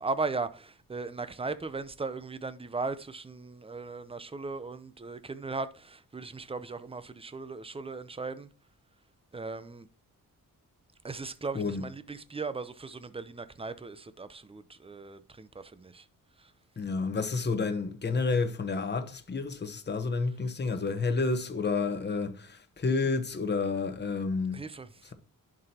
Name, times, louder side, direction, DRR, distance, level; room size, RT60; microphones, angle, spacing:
voice 1, 0.0-8.5 9.3-9.9 11.0-16.1 16.4-16.5 24.5-25.1, right 4 dB, 15° right, 0.6 m, -37 dB
voice 2, 11.5-11.9 16.8-24.6, left 4 dB, 30° left, 1.0 m, -30 dB
11.0 x 6.1 x 2.8 m
wide cardioid pair, 125°, 34 cm